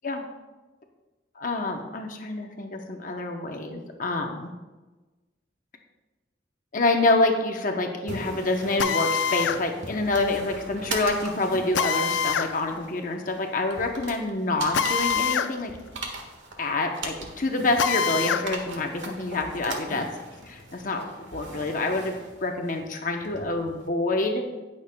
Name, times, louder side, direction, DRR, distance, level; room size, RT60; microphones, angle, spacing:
voice 1, 1.4-4.5 6.7-15.7 16.6-20.1 20.4-21.0 21.3-24.5, left 2 dB, 45° left, 3 dB, 0.8 m, -27 dB
sound 1, 8.1-23.9, right 2 dB, 85° right, 1.5 m, -40 dB
Drill, 8.8-9.6 11.7-12.5 14.7-15.5 15.9-16.0 17.8-18.5, left 6 dB, 85° left, 0.5 m, -25 dB
17.5 x 6.7 x 2.2 m, 1.2 s
head